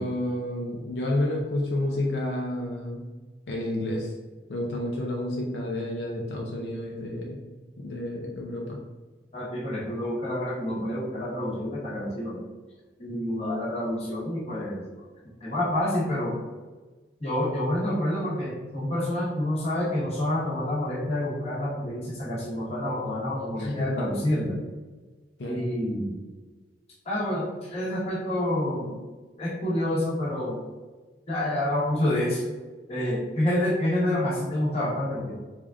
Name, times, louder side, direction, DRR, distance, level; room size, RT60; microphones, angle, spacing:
voice 1, 0.0-3.0 3.5-4.1 4.5-7.4 7.8-8.8 23.6-24.1 25.4-25.6, left 1 dB, 80° left, -2 dB, 0.6 m, -30 dB
voice 2, 9.3-12.4 13.0-14.8 15.4-16.4 17.2-24.6 25.4-26.2 27.0-29.0 29.4-30.6 31.3-32.4 32.9-35.3, left 1 dB, 35° left, -6 dB, 1.1 m, -28 dB
3.6 x 2.4 x 3.5 m, 1.3 s
head